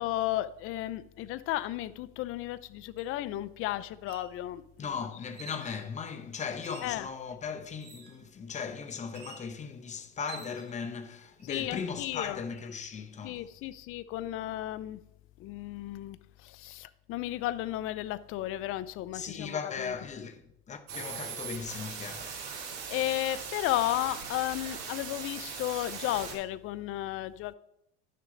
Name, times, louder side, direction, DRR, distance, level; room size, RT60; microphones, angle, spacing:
voice 1, 0.0-4.9 6.8-7.1 11.5-12.4 13.2-15.0 15.4-19.9 22.9-27.5, left 15 dB, 45° left, 0.5 m, -34 dB
sound 1, 3.0-3.1 3.9-4.3 5.3-5.9 6.6-7.0 7.8-8.2 9.1-9.5 10.3-10.8 11.4-11.8, right 5 dB, 35° right, 3.1 m, -49 dB
voice 2, 4.8-13.4 19.1-20.4 20.7-22.3, left 6 dB, 20° left, 0.9 m, -38 dB
sound 2, 20.9-26.3, right 6 dB, 50° right, 2.8 m, -40 dB
10.5 x 6.6 x 3.9 m
supercardioid pair, 110°, 31 cm